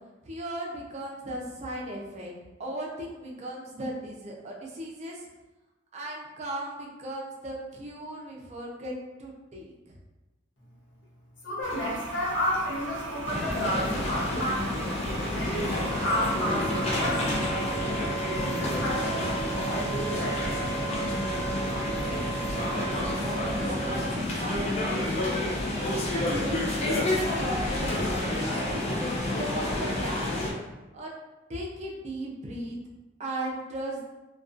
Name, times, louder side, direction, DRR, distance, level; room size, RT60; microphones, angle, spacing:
voice 1, 0.2-2.3 2.6-5.3 5.9-10.0 22.4-25.0 25.4-30.4 30.9-31.1 31.5-32.8 33.2-34.0, right 1 dB, 35° right, -2 dB, 0.4 m, -38 dB
voice 2, 11.4-14.9 15.3-17.5 18.4-20.7, left 1 dB, 70° left, -5 dB, 0.8 m, -31 dB
Toilet flush, 11.6-17.4, right 2 dB, 85° right, 0.6 m, -39 dB
sound 1, 13.3-30.5, left 1 dB, 35° left, 0.4 m, -29 dB
Wind instrument woodwind instrument, 15.6-24.1, right 7 dB, 20° left, 1.0 m, -36 dB
2.4 x 2.2 x 2.4 m, 1.1 s
head